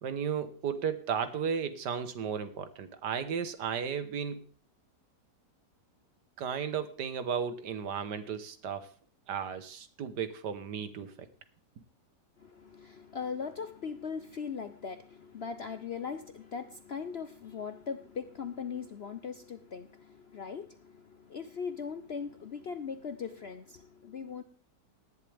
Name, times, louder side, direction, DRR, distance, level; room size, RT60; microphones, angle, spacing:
voice 1, 0.0-4.5 6.4-8.9 9.3-11.1, right 7 dB, 75° right, 11 dB, 1.7 m, -34 dB
voice 2, 12.4-24.4, left 6 dB, 55° left, 10 dB, 0.7 m, -40 dB
18.0 x 11.0 x 3.4 m, 0.38 s
omnidirectional pair, 1.8 m